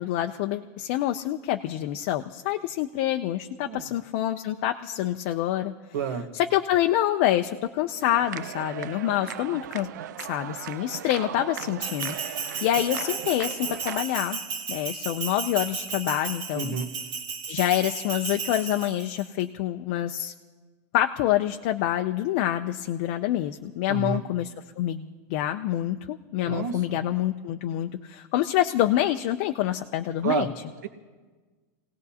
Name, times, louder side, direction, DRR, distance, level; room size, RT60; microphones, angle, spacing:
voice 1, 0.0-5.7 6.3-9.9 10.2-12.2 12.6-14.4 14.7-16.8 17.5-20.3 20.9-30.5, left 13 dB, 40° left, 6 dB, 0.4 m, -27 dB
voice 2, 5.9-6.3 16.5-16.9 23.9-24.2 26.4-26.8 30.2-30.5 30.8-30.9, right 7 dB, 75° right, 6 dB, 1.3 m, -29 dB
sound 1, 8.1-14.0, right 11 dB, 90° right, 0.5 m, -38 dB
Bell, 11.8-19.2, right 5 dB, 30° right, 1.6 m, -34 dB
29.0 x 17.5 x 2.8 m, 1.4 s
supercardioid pair, 175°, 9 cm